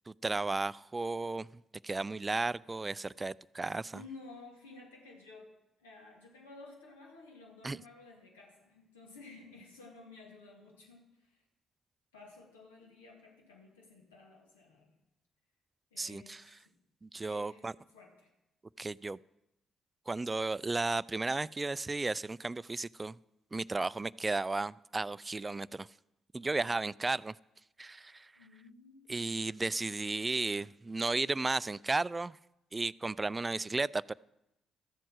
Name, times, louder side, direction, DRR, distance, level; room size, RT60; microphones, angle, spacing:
voice 1, 0.1-1.5 1.8-4.0 7.6-7.8 16.0-16.4 17.0-17.7 18.8-19.2 20.1-23.2 23.5-25.9 26.3-27.3 27.8-28.3 29.1-32.4 32.7-34.1, right 3 dB, 25° right, 0.3 m, -34 dB
voice 2, 3.9-11.4 12.1-14.9 15.9-16.8 17.3-18.3 26.6-26.8 28.4-29.0, left 3 dB, 90° left, 2.4 m, -54 dB
13.5 x 7.7 x 6.2 m
hypercardioid pair, 45°, 0 cm